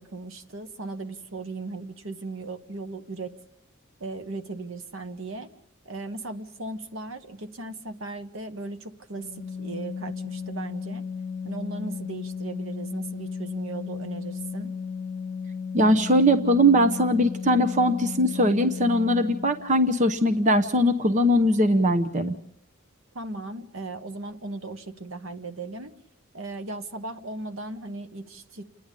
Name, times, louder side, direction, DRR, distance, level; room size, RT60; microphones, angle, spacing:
voice 1, 0.0-3.3 4.0-5.5 5.8-11.1 11.4-14.8 23.1-25.9 26.3-28.6, right 3 dB, 70° right, 9 dB, 1.3 m, -37 dB
Organ, 9.2-19.8, left 6 dB, 55° left, 0.9 m, -35 dB
voice 2, 15.7-22.4, equal, 35° right, 10 dB, 0.9 m, -21 dB
29.5 x 10.5 x 8.4 m, 0.81 s
head